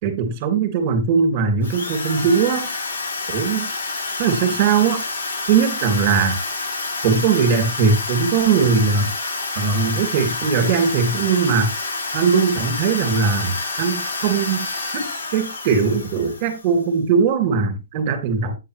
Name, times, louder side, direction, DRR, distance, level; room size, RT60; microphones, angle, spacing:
voice 1, 0.0-2.7 3.3-3.7 4.2-5.0 5.5-6.4 7.0-9.1 9.6-11.7 12.1-14.7 14.9-18.6, right 5 dB, 30° right, 2.7 m, -20 dB
Drill, 1.6-16.8, left 3 dB, 65° left, 6.8 m, -28 dB
8.8 x 8.2 x 3.4 m
hypercardioid pair, 165°, 0 cm